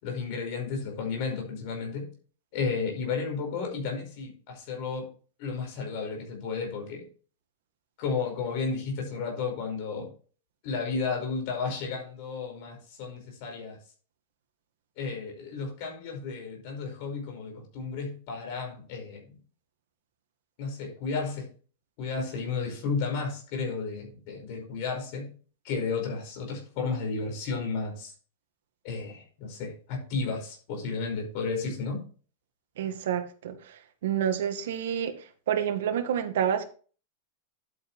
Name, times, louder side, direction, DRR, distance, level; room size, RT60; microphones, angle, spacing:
voice 1, 0.0-2.1 2.5-5.1 5.4-7.1 8.0-10.1 10.6-13.8 15.0-19.4 20.6-21.5 22.0-25.3 25.6-28.1 28.8-32.1, left 4 dB, 45° left, 5.1 m, -33 dB
voice 2, 32.8-33.5 34.0-35.1 35.5-36.6, right 9 dB, 75° right, 1.9 m, -28 dB
11.5 x 8.8 x 3.1 m
supercardioid pair, 170°, 0 cm